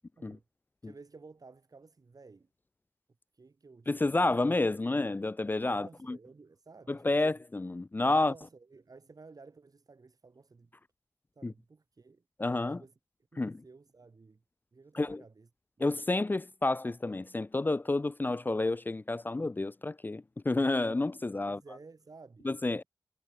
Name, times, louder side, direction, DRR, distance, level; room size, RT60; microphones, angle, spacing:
voice 1, 0.8-2.5 3.3-4.4 5.7-7.4 8.2-10.7 11.4-12.2 12.8-12.9 13.3-14.4 14.7-15.5 15.8-15.9 21.4-22.5, right 4 dB, 60° right, 7.2 m, -54 dB
voice 2, 3.9-6.2 6.9-8.3 11.4-11.5 12.4-12.8 13.4-13.6 14.9-15.2 15.8-21.6 22.4-22.8, left 2 dB, 25° left, 0.4 m, -30 dB
wide cardioid pair, 90°, 7 cm